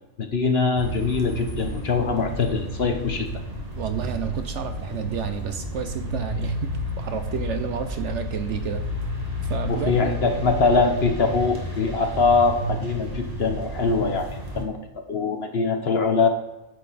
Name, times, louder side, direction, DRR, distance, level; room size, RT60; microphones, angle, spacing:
voice 1, 0.2-3.3 9.7-14.3 14.5-14.8 15.1-16.3, left 4 dB, 50° left, 5 dB, 1.1 m, -22 dB
sound 1, 0.7-14.6, equal, 30° right, 1.5 m, -31 dB
voice 2, 3.7-8.9 9.5-10.2, right 7 dB, 60° right, 8 dB, 0.9 m, -30 dB
9.2 x 6.9 x 4.1 m, 1.0 s
omnidirectional pair, 1.5 m